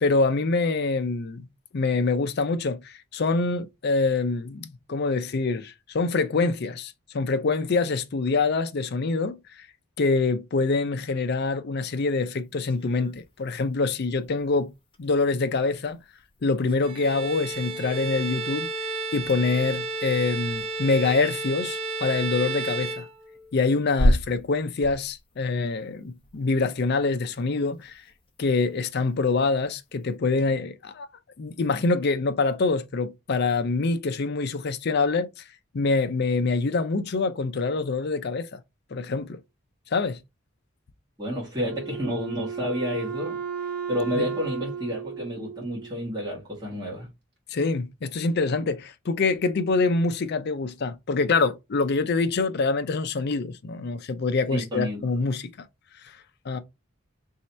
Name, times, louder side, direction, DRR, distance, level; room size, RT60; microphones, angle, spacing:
voice 1, 0.0-1.5 1.7-9.7 10.0-14.7 15.0-16.0 16.4-18.7 19.1-23.1 23.5-28.0 28.4-31.1 31.4-35.4 35.7-38.6 38.9-39.4 39.9-40.2 44.1-44.3 47.5-55.5 56.0-56.1 56.5-56.6, left 3 dB, 50° left, 0.5 m, -25 dB
sound 1, 11.9-30.2, equal, 25° left, 0.7 m, -35 dB
Bowed string instrument, 16.8-23.6, right 3 dB, 70° right, 1.1 m, -32 dB
voice 2, 41.2-43.4 43.9-47.1 54.5-55.1, equal, 20° right, 1.7 m, -30 dB
Wind instrument woodwind instrument, 41.7-46.1, right 7 dB, 50° right, 1.9 m, -34 dB
3.1 x 2.8 x 4.3 m
head